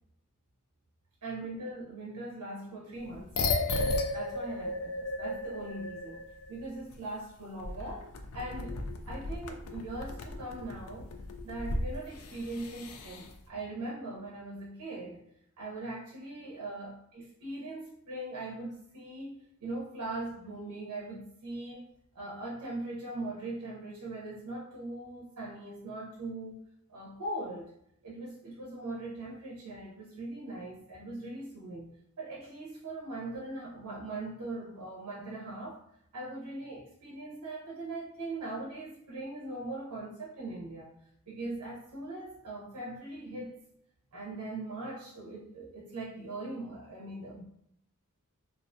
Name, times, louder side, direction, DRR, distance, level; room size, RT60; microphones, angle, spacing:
voice 1, 1.2-3.4 4.1-6.2 6.5-11.1 11.4-15.2 15.6-21.9 22.1-26.6 26.9-27.7 28.0-31.9 32.2-35.8 36.1-41.0 41.3-43.6 44.1-47.4, right 2 dB, 90° right, -4 dB, 0.5 m, -40 dB
sound 1, 3.1-6.6 6.9-7.0 7.6-13.3, left 2 dB, 70° left, 0.3 m, -35 dB
2.4 x 2.1 x 2.5 m, 0.73 s
head